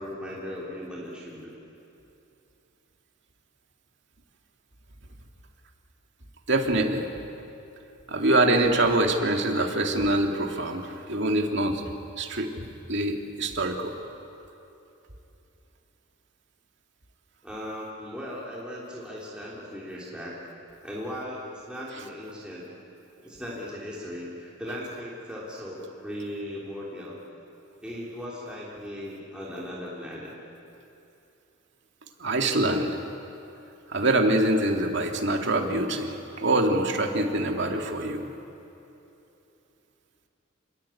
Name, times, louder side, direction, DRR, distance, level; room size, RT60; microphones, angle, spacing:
voice 1, 0.0-1.5 17.4-20.3 20.8-22.6 23.2-27.2 27.8-30.3, equal, 5° right, -6 dB, 3.3 m, -37 dB
voice 2, 6.5-7.1 8.1-11.8 12.2-13.9 32.2-33.0 33.9-38.2, right 2 dB, 55° right, 2 dB, 2.5 m, -24 dB
27.5 x 20.5 x 8.6 m, 2.9 s
head